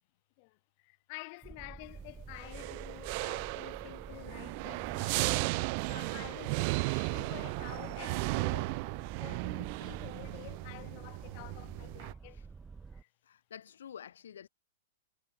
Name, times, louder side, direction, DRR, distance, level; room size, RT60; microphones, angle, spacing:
voice 1, 0.4-8.8 9.2-12.4 12.9-13.1, left 30 dB, 40° left, 5.9 m, -50 dB
Boat Water vehicle, 1.4-13.0, right 4 dB, 10° right, 2.0 m, -49 dB
sound 1, 2.4-12.1, right 31 dB, 40° right, 0.4 m, -35 dB
voice 2, 13.2-14.5, left 9 dB, 90° left, 2.8 m, -49 dB
supercardioid pair, 160°, 0 cm